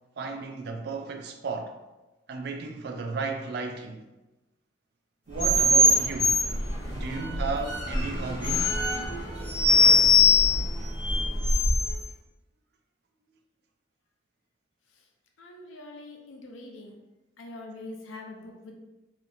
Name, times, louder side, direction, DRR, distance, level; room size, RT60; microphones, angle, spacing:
voice 1, 0.2-1.7 2.3-4.0 5.3-6.4 6.9-8.8, right 4 dB, 55° right, 0.3 m, -34 dB
sound 1, 5.4-12.0, left 2 dB, 25° left, 0.6 m, -22 dB
voice 2, 15.4-16.9 17.4-18.7, left 2 dB, 90° left, 0.5 m, -43 dB
2.8 x 2.1 x 2.5 m
head